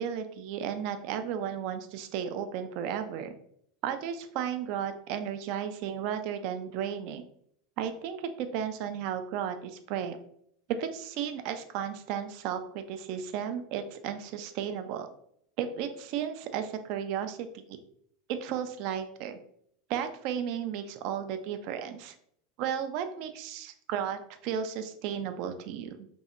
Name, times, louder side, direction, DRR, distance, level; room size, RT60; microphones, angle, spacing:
voice 1, 0.0-3.3 3.8-7.3 7.8-10.2 10.8-15.1 15.6-17.8 18.3-19.4 19.9-22.1 22.6-26.1, right 8 dB, 60° right, 8 dB, 0.3 m, -34 dB
2.6 x 2.1 x 2.4 m, 0.69 s
hypercardioid pair, 105°, 0 cm